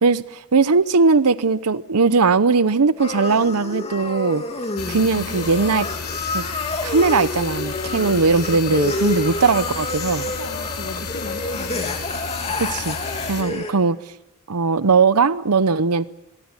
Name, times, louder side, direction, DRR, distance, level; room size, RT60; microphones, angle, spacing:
voice 1, 0.0-4.4 4.9-5.9 6.3-6.4 6.8-10.3 12.6-13.0 13.2-14.0 14.5-16.1, right 4 dB, 85° right, 16 dB, 0.8 m, -19 dB
sound 1, 3.0-13.7, left 2 dB, 30° left, 2.9 m, -28 dB
sound 2, 4.8-13.4, left 5 dB, 85° left, 3.0 m, -32 dB
voice 2, 4.8-5.5 7.8-8.2 10.2-12.0, left 1 dB, 50° left, 4 dB, 2.0 m, -37 dB
23.0 x 19.0 x 9.9 m, 0.92 s
head